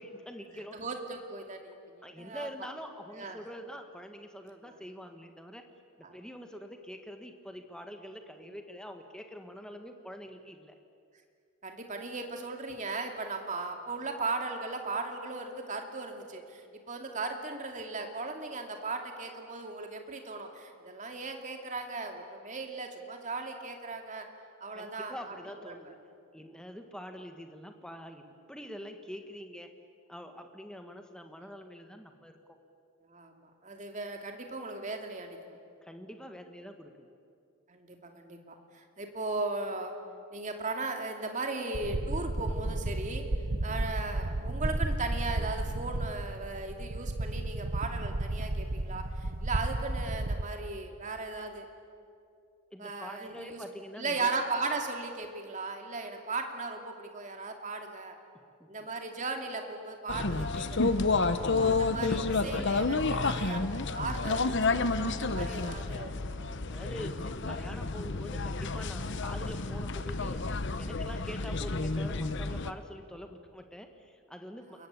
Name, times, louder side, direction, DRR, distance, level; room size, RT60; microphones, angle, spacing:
voice 1, 0.0-0.8 2.0-5.6 6.0-10.7 24.7-26.0 26.3-29.7 30.1-32.4 35.8-37.2 52.7-54.3 62.4-62.7 65.4-65.8 66.7-74.9, equal, 5° left, 5 dB, 1.7 m, -45 dB
voice 2, 0.7-2.5 3.1-3.4 4.6-4.7 6.0-6.2 11.6-24.3 24.6-25.4 25.7-25.9 33.1-35.6 37.7-40.0 40.3-43.3 43.6-51.7 52.8-53.6 53.9-58.2 58.7-63.6 63.9-66.1 74.8-74.9, right 3 dB, 35° right, 4 dB, 2.7 m, -37 dB
sound 1, 41.7-50.4, right 2 dB, 65° right, 1.1 m, -33 dB
sound 2, 60.1-72.7, left 3 dB, 55° left, 1.0 m, -30 dB
29.0 x 22.5 x 8.5 m, 2.4 s
head